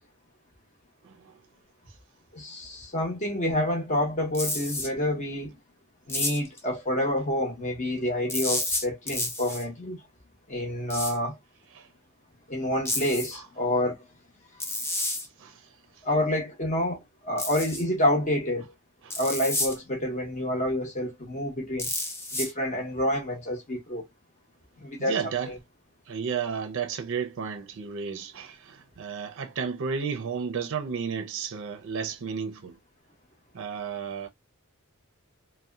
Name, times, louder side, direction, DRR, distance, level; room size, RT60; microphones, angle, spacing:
voice 1, 2.3-5.6 6.1-10.0 10.5-11.4 12.5-14.0 16.0-18.7 19.2-21.9 22.3-24.0 24.8-25.2 25.5-25.6, left 1 dB, 35° left, 0.8 m, -28 dB
sound 1, 4.3-4.9 6.1-6.6 8.3-9.6 10.9-11.2 12.9-13.4 14.6-15.3 17.4-17.8 19.1-19.8 21.8-22.5, left 2 dB, 10° left, 0.5 m, -30 dB
voice 2, 25.0-25.5 26.1-32.8 33.5-34.3, right 6 dB, 60° right, 0.4 m, -32 dB
2.6 x 2.1 x 2.3 m
head